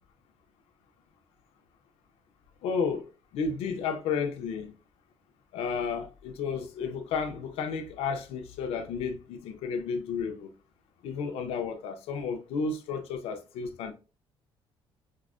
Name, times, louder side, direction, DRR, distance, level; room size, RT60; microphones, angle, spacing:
voice 1, 2.6-3.0 3.3-4.7 5.5-10.5 11.0-13.9, left 5 dB, 85° left, 0.6 m, -32 dB
4.7 x 2.0 x 2.4 m
cardioid pair, 160°, 10 cm